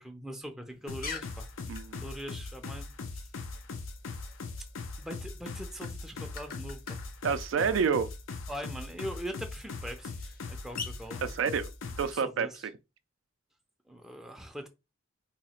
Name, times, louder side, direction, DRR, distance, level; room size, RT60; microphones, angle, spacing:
voice 1, 0.0-1.5 2.0-2.9 3.1-3.3 5.0-7.0 8.5-11.2 12.1-12.7 13.9-14.7, equal, ahead, 0.4 m, -42 dB
sound 1, 0.7-11.4, left 5 dB, 50° left, 0.7 m, -48 dB
sound 2, 0.9-12.1, left 3 dB, 90° left, 0.6 m, -40 dB
voice 2, 1.7-2.0 7.2-8.1 11.2-11.7 12.0-12.5, right 6 dB, 75° right, 0.4 m, -28 dB
2.8 x 2.4 x 4.2 m
head